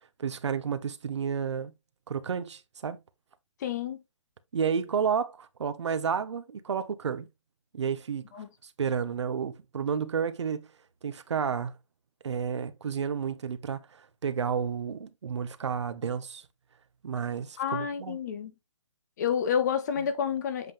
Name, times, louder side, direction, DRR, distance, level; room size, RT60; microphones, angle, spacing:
voice 1, 0.2-1.7 2.1-3.0 4.5-7.3 7.7-8.3 8.6-10.7 11.0-11.7 12.2-16.4 17.0-18.2, right 7 dB, 60° right, 0.9 m, -31 dB
voice 2, 3.6-4.0 8.3-8.5 17.6-18.5 19.2-20.7, left 8 dB, 35° left, 1.0 m, -29 dB
7.8 x 3.6 x 3.3 m
hypercardioid pair, 155°, 16 cm